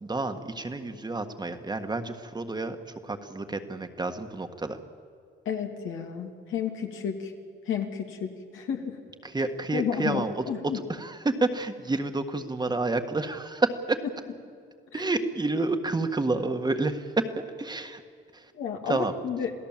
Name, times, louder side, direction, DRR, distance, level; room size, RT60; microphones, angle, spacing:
voice 1, 0.0-4.8 9.2-10.4 10.7-14.0 14.9-17.3 17.6-18.0 18.3-18.5 18.9-19.1, right 2 dB, 20° right, 6 dB, 1.6 m, -29 dB
voice 2, 5.4-7.3 7.7-9.0 9.7-10.8 18.5-19.5, left 7 dB, 85° left, 2 dB, 2.8 m, -31 dB
28.0 x 17.0 x 7.5 m, 2.3 s
cardioid pair, 90°, 20 cm